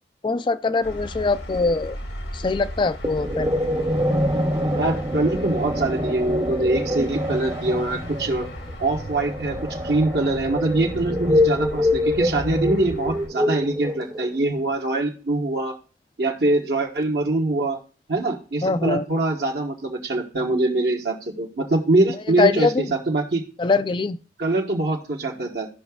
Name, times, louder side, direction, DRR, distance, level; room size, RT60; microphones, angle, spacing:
voice 1, 0.2-2.0 2.3-3.9 18.6-19.0 22.4-22.9 23.6-24.2, left 3 dB, 25° left, 0.3 m, -23 dB
sound 1, 0.8-13.3, equal, 90° left, 1.7 m, -36 dB
sound 2, 3.0-14.4, left 1 dB, 20° right, 0.6 m, -25 dB
voice 2, 4.7-8.5 8.8-15.7 16.2-17.8 18.1-23.4 24.4-25.7, right 2 dB, 65° right, 1.2 m, -23 dB
17.0 x 5.7 x 2.3 m
head